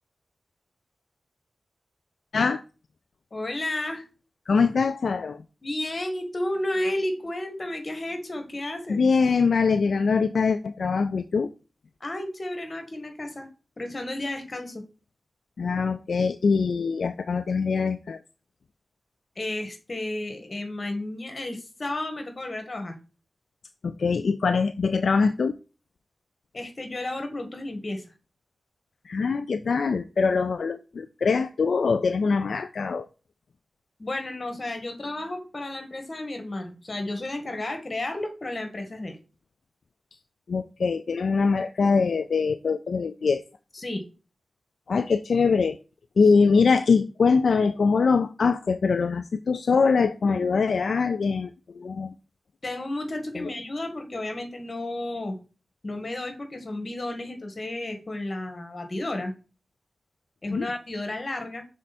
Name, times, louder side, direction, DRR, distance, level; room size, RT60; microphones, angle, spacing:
voice 1, 3.3-4.0 5.6-9.0 12.0-13.5 13.8-14.8 19.4-23.0 26.5-28.0 34.0-39.2 43.7-44.0 52.6-55.4 55.8-59.3 60.4-61.7, left 1 dB, 45° left, 6 dB, 1.8 m, -32 dB
voice 2, 4.5-5.4 8.9-11.5 15.6-18.2 23.8-25.6 29.0-33.1 40.5-43.4 44.9-45.8 46.2-52.1 53.4-53.5 60.5-60.7, left 5 dB, 80° left, 11 dB, 0.3 m, -23 dB
6.2 x 4.4 x 4.2 m, 0.32 s
cardioid pair, 55°, 0 cm